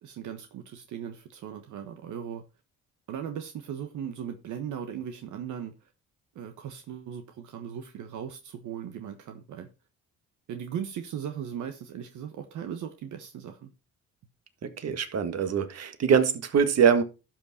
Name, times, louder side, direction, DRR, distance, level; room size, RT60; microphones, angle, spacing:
voice 1, 0.0-2.4 3.1-5.9 6.3-9.7 10.5-13.7, right 8 dB, 80° right, 1.3 m, -38 dB
voice 2, 14.6-17.0, right 7 dB, 55° right, 1.7 m, -23 dB
12.0 x 6.1 x 4.2 m
cardioid pair, 90°, 30 cm